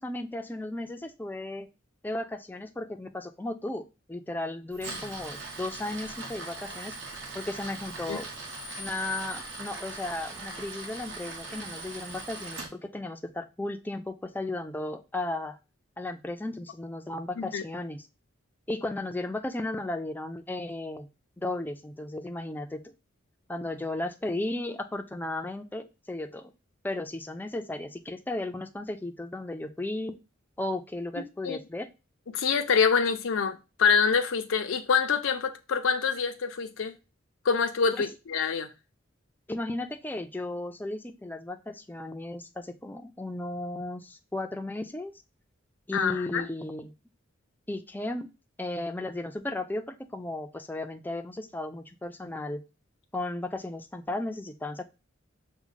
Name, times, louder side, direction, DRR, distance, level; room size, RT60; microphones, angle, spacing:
voice 1, 0.0-1.7 2.0-7.0 7.3-8.3 8.8-15.6 16.0-18.0 18.7-21.1 21.4-22.9 23.5-26.5 26.8-30.1 30.6-31.9 39.5-45.1 45.9-46.9 47.7-48.3 48.6-52.6 53.1-54.8, left 2 dB, 10° left, 0.4 m, -35 dB
Tools, 4.7-12.7, right 2 dB, 65° right, 1.3 m, -40 dB
voice 2, 31.2-31.6 32.3-36.9 37.4-38.7 45.9-46.5, left 6 dB, 85° left, 0.5 m, -26 dB
5.9 x 2.2 x 3.9 m
head